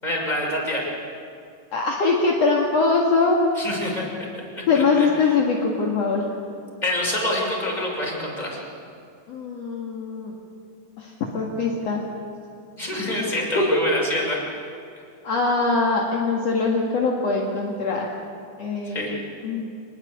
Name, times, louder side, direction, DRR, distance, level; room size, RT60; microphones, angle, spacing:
voice 1, 0.0-0.8 3.6-4.1 4.6-5.3 6.8-8.6 12.8-14.4 18.9-19.1, left 1 dB, 10° left, -2 dB, 6.5 m, -26 dB
voice 2, 1.7-3.4 4.7-6.2 9.3-10.3 11.0-12.0 13.6-13.8 15.2-18.1 18.6-19.2 19.4-19.7, left 4 dB, 55° left, -2 dB, 3.0 m, -22 dB
26.0 x 20.5 x 8.4 m, 2.5 s
omnidirectional pair, 3.6 m